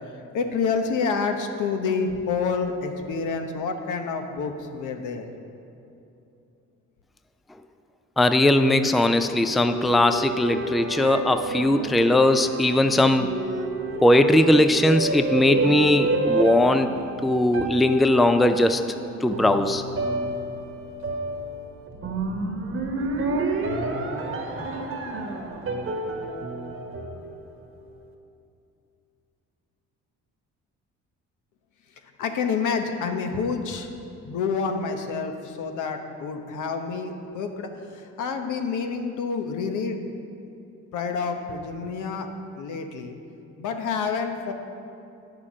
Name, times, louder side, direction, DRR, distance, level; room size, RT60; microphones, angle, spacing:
voice 1, 0.3-5.3 32.2-33.9 34.2-40.0 40.9-42.3 42.6-43.2 43.6-44.5, left 5 dB, 80° left, 5 dB, 1.0 m, -28 dB
voice 2, 8.2-13.3 14.0-16.9 17.2-18.8 19.2-19.8, left 1 dB, ahead, 9 dB, 0.4 m, -19 dB
sound 1, 9.1-27.7, right 2 dB, 45° right, 1.2 m, -30 dB
9.8 x 6.6 x 6.2 m, 2.7 s
cardioid pair, 90°, 30 cm